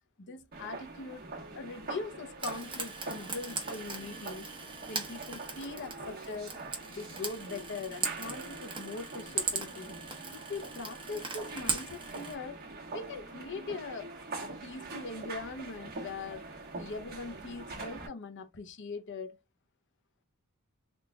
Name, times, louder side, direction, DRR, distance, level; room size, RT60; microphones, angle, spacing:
voice 1, 0.2-1.2 1.5-4.5 4.9-6.6 6.9-10.0 10.3-12.6 12.9-14.1 14.4-16.5 16.8-19.4, left 3 dB, 55° left, 0.7 m, -41 dB
sound 1, 0.5-18.1, right 3 dB, 45° right, 1.3 m, -44 dB
Frying (food), 2.4-12.3, right 5 dB, 20° right, 1.0 m, -39 dB
3.8 x 2.4 x 3.4 m
head